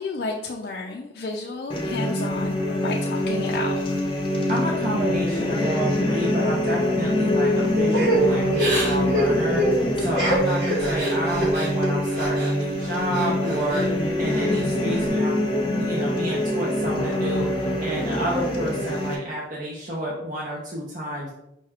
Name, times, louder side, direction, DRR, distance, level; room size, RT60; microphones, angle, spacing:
voice 1, 0.0-3.8, left 3 dB, 55° left, 0 dB, 0.3 m, -31 dB
sound 1, 1.7-19.2, left 1 dB, 30° left, 0.7 m, -24 dB
voice 2, 4.3-15.4 15.8-21.3, right 1 dB, 45° right, -4 dB, 0.6 m, -30 dB
Crying sobbing / Breathing, 7.9-12.5 12.9-13.9 14.3-15.0, right 1 dB, 70° right, 1.3 m, -26 dB
5.3 x 2.3 x 3.4 m, 0.86 s
head